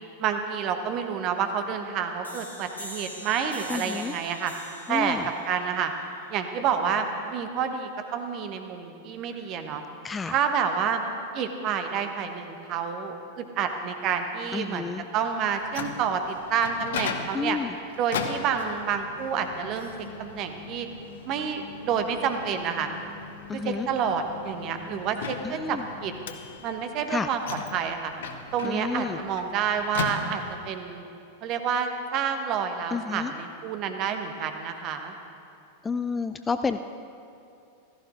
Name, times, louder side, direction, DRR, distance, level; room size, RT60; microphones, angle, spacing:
voice 1, 0.2-4.5 4.9-5.2 5.4-5.9 6.3-9.8 10.3-11.0 11.3-17.6 18.0-19.9 20.2-20.9 21.2-22.9 23.5-26.1 26.6-27.4 27.7-28.1 28.5-31.0 31.4-35.1, right 7 dB, 40° right, 6 dB, 1.1 m, -29 dB
sound 1, 2.2-7.7, left 1 dB, 85° left, 1.6 m, -45 dB
voice 2, 3.7-4.1 4.9-5.3 10.0-10.4 14.5-15.0 17.3-17.7 23.5-23.9 25.4-25.8 27.1-27.3 28.6-29.2 32.9-33.3 35.8-36.8, left 4 dB, 15° left, 10 dB, 0.3 m, -30 dB
Microwave oven, 15.4-30.8, left 6 dB, 60° left, 0.8 m, -38 dB
15.5 x 14.0 x 3.7 m, 2.6 s
figure-of-eight pair, 90°, 0 cm